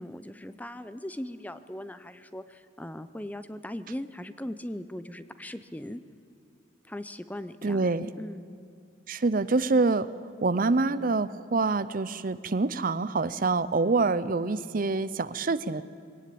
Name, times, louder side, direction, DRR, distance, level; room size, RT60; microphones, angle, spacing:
voice 1, 0.0-6.0 6.9-8.4, left 1 dB, 10° left, 12 dB, 0.6 m, -39 dB
voice 2, 7.6-8.1 9.1-10.1 10.4-15.8, right 3 dB, 45° right, 16 dB, 0.6 m, -26 dB
21.5 x 18.0 x 8.6 m, 2.4 s
head